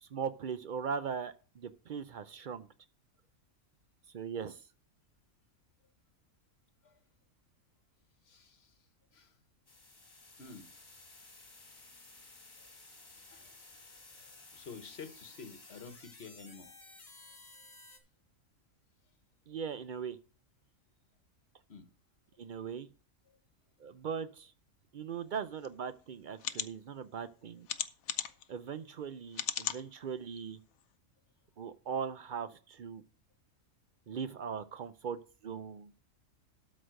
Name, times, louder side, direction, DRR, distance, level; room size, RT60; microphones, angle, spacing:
voice 1, 0.0-2.7 4.1-4.7 19.5-20.2 22.4-22.9 23.8-24.5 24.9-27.7 28.5-30.6 31.6-33.0 34.1-35.9, right 6 dB, 65° right, 0.5 m, -39 dB
voice 2, 8.2-8.8 9.1-9.3 10.4-10.7 12.6-12.7 13.3-13.6 14.3-16.9 21.7-21.9 23.3-23.4 25.1-25.3, left 5 dB, 50° left, 1.3 m, -50 dB
sound 1, 9.7-18.0, left 3 dB, 35° left, 1.8 m, -55 dB
sound 2, 25.6-25.7 26.4-26.7 27.7-28.4 29.3-29.8 30.4-30.5 30.8-30.9, left 10 dB, 80° left, 1.1 m, -35 dB
12.5 x 4.2 x 6.3 m
omnidirectional pair, 1.4 m